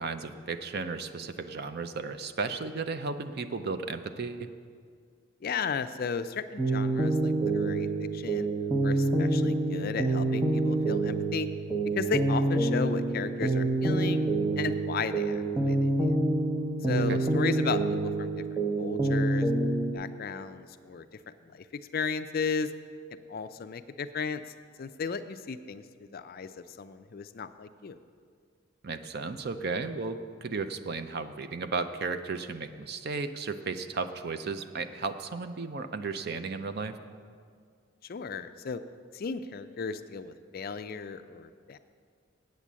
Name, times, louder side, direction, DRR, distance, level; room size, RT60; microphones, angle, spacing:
voice 1, 0.0-4.5 17.1-17.2 28.8-37.0, right 4 dB, 50° right, 10 dB, 0.5 m, -34 dB
voice 2, 5.4-7.9 8.1-8.5 8.8-11.5 12.0-14.3 14.6-16.1 16.8-18.4 18.8-19.5 19.9-22.7 23.3-24.4 24.8-28.0 38.0-38.8 39.1-41.8, left 5 dB, 45° left, 11 dB, 0.4 m, -35 dB
sound 1, 6.6-19.9, right 2 dB, 20° right, 1.0 m, -27 dB
8.3 x 8.2 x 7.4 m, 2.1 s
head